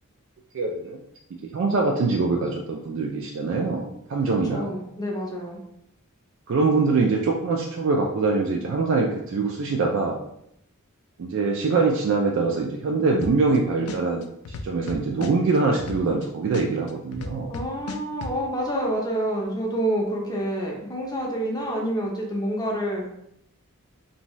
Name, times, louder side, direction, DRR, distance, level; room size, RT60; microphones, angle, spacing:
voice 1, 0.5-1.0 1.5-4.8 6.5-10.2 11.2-14.2 14.5-17.5, right 3 dB, 60° right, 0 dB, 0.3 m, -23 dB
voice 2, 4.2-5.6 17.5-23.1, right 1 dB, 20° left, -2 dB, 0.5 m, -28 dB
sound 1, 13.2-13.6 13.9-16.2 16.5-18.3, left 3 dB, 80° left, 0.3 m, -34 dB
2.6 x 2.2 x 3.0 m, 0.76 s
head